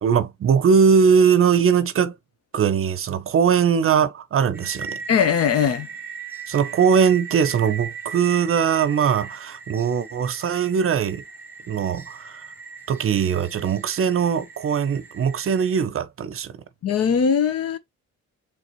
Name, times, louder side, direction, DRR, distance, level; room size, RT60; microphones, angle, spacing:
voice 1, 0.0-2.1 2.5-5.0 6.5-11.2 11.7-12.4 12.9-16.6, right 7 dB, 45° right, 0.7 m, -20 dB
Tropical Forest Sunset Anmbient, 4.5-15.8, right 6 dB, 5° right, 1.5 m, -38 dB
voice 2, 5.1-5.9 16.8-17.8, left 7 dB, 55° left, 0.8 m, -20 dB
4.0 x 3.4 x 3.0 m
cardioid pair, 90°, 30 cm